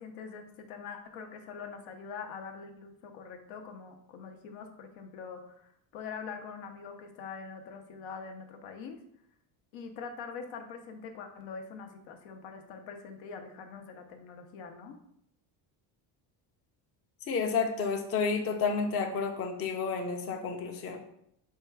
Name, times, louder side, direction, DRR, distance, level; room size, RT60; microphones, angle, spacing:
voice 1, 0.0-9.0 9.7-15.0, left 5 dB, 75° left, 5 dB, 0.8 m, -44 dB
voice 2, 17.3-21.0, left 5 dB, 30° left, 3 dB, 0.6 m, -30 dB
4.5 x 2.3 x 4.5 m, 0.73 s
cardioid pair, 125°, 47 cm